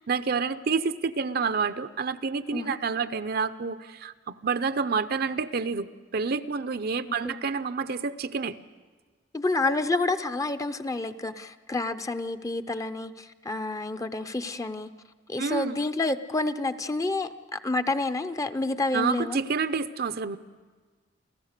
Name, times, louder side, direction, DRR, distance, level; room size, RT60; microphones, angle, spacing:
voice 1, 0.0-5.9 6.1-8.6 15.4-15.8 18.9-20.4, right 5 dB, 55° right, 12 dB, 0.6 m, -28 dB
voice 2, 9.3-14.9 15.3-19.4, left 2 dB, 20° left, 11 dB, 0.6 m, -29 dB
29.5 x 14.0 x 6.7 m, 1.4 s
head